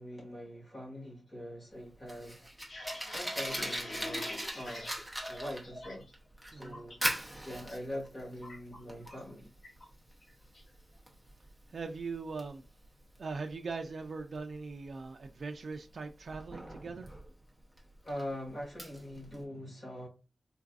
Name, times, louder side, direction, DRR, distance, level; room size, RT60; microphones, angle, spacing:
voice 1, 0.0-2.5 3.1-4.9 5.3-6.1 6.5-7.0 7.4-9.5 18.0-20.1, equal, 35° left, 1.8 m, -43 dB
Fire, 1.7-19.4, equal, ahead, 0.8 m, -42 dB
sound 1, 2.4-6.1 6.4-7.0 7.4-7.8 8.0-9.3 9.6-9.9 10.2-10.7, left 1 dB, 55° left, 1.1 m, -44 dB
voice 2, 6.5-6.8 11.7-12.6 13.2-17.1, right 4 dB, 55° right, 0.4 m, -40 dB
3.9 x 2.5 x 2.4 m
wide cardioid pair, 140°, 0 cm